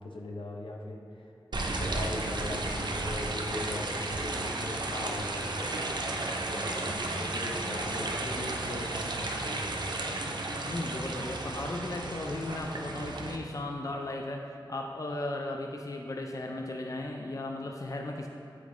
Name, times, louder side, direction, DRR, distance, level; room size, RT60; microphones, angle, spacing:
voice 1, 0.0-10.4, left 1 dB, 80° left, 0 dB, 0.7 m, -40 dB
sound 1, 1.5-13.4, right 2 dB, 60° right, 0.6 m, -33 dB
voice 2, 10.7-18.3, left 2 dB, 40° left, 2 dB, 0.5 m, -36 dB
8.5 x 4.5 x 3.1 m, 2.5 s
wide cardioid pair, 45°, 9 cm